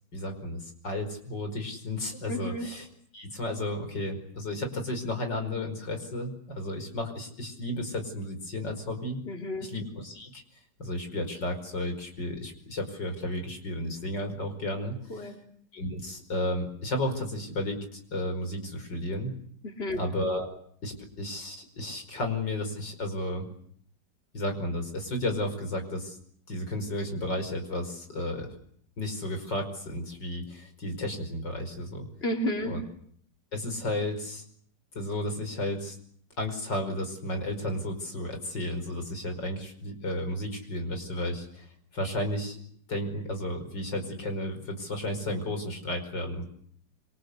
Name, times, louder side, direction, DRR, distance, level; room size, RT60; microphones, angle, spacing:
voice 1, 0.1-2.9 3.1-9.2 9.7-10.4 10.8-15.3 15.7-19.3 20.0-20.5 20.8-23.5 24.3-26.2 26.5-28.5 29.0-32.1 32.6-32.8 33.5-34.4 34.9-36.0 36.4-41.7 41.9-42.6 42.9-46.4, left 1 dB, 85° left, 6 dB, 5.9 m, -33 dB
voice 2, 2.3-2.7 9.3-9.7 15.1-15.4 19.6-20.0 32.2-32.8, left 1 dB, 35° left, 3 dB, 3.8 m, -31 dB
27.0 x 25.5 x 8.3 m, 0.63 s
omnidirectional pair, 1.9 m